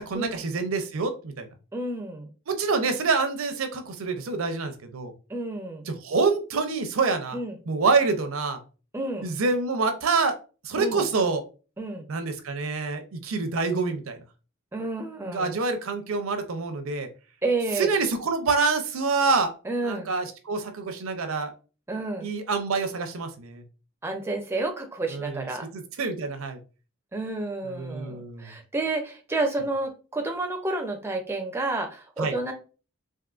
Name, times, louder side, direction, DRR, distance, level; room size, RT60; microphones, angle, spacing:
voice 1, 0.0-1.5 2.5-5.1 5.9-7.4 7.7-8.6 9.2-10.4 10.6-11.4 12.1-14.2 15.3-17.1 17.8-19.5 19.8-21.5 22.2-23.6 25.1-25.5 25.7-26.6 27.6-28.5 32.2-32.3, right 4 dB, 65° right, 7 dB, 0.5 m, -26 dB
voice 2, 1.7-2.3 5.3-5.9 7.3-7.6 8.9-9.3 10.8-11.0 11.8-12.1 14.7-15.6 17.4-17.9 19.6-20.1 21.9-22.3 24.0-25.7 27.1-32.5, right 2 dB, 10° right, 3 dB, 0.4 m, -30 dB
3.6 x 2.5 x 2.4 m, 0.35 s
head